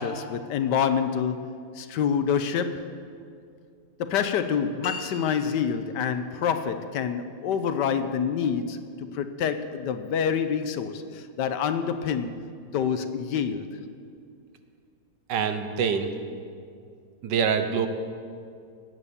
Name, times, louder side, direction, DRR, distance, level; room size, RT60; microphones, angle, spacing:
voice 1, 0.0-2.9 4.0-12.4 12.7-13.7, left 7 dB, 80° left, 10 dB, 1.4 m, -27 dB
sound 1, 4.8-5.9, left 4 dB, 50° left, 1.6 m, -39 dB
voice 2, 15.3-16.1 17.2-17.9, right 6 dB, 85° right, 8 dB, 1.6 m, -25 dB
17.5 x 8.3 x 6.9 m, 2.3 s
omnidirectional pair, 1.9 m